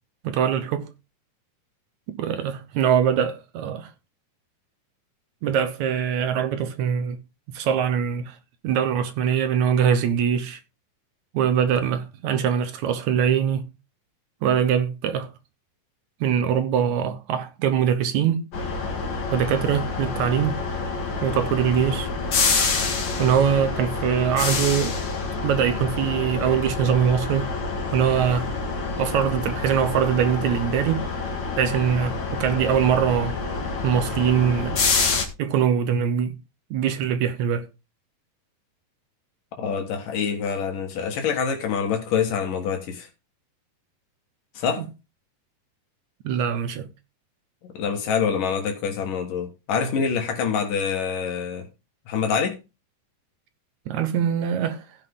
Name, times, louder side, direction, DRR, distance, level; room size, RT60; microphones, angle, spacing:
voice 1, 0.2-0.9 2.1-3.9 5.4-7.2 7.5-8.4 8.6-10.6 11.3-13.7 14.4-15.3 16.2-18.5 19.3-20.7 21.2-22.1 23.2-25.0 25.4-27.6 27.9-28.5 29.0-31.1 31.5-33.4 33.8-34.8 35.4-36.4 36.7-37.7 44.8-44.9 46.2-46.9 53.9-54.9, right 8 dB, 70° right, 2.0 m, -23 dB
sound 1, 18.5-35.2, left 4 dB, 40° left, 2.1 m, -27 dB
voice 2, 39.6-43.1 44.6-44.9 47.6-51.7 52.1-52.6, left 6 dB, 80° left, 3.1 m, -26 dB
16.0 x 5.8 x 3.7 m
omnidirectional pair, 3.7 m